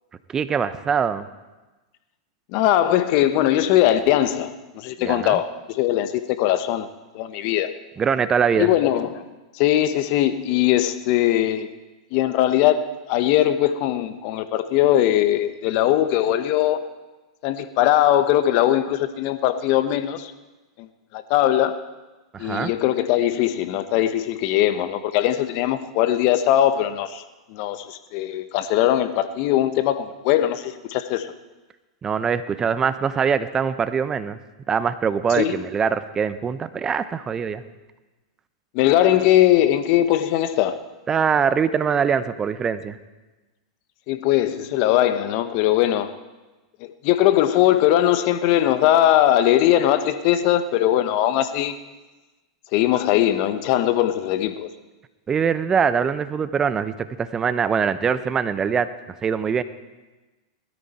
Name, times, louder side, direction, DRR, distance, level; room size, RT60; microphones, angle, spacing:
voice 1, 0.3-1.3 5.0-5.4 8.0-8.7 22.3-22.7 32.0-34.4 34.7-37.6 41.1-43.0 55.3-58.9 59.2-59.6, right 6 dB, 20° right, 13 dB, 0.8 m, -23 dB
voice 2, 2.5-6.9 7.1-7.7 8.6-9.2 9.5-11.7 12.1-16.8 17.4-20.3 20.8-20.9 21.1-21.8 22.4-27.2 27.5-31.3 35.3-35.6 38.7-40.8 44.1-46.1 46.8-51.8 52.7-54.7, left 12 dB, 50° left, 11 dB, 1.1 m, -20 dB
20.5 x 13.5 x 4.3 m, 1.2 s
hypercardioid pair, 115°, 3 cm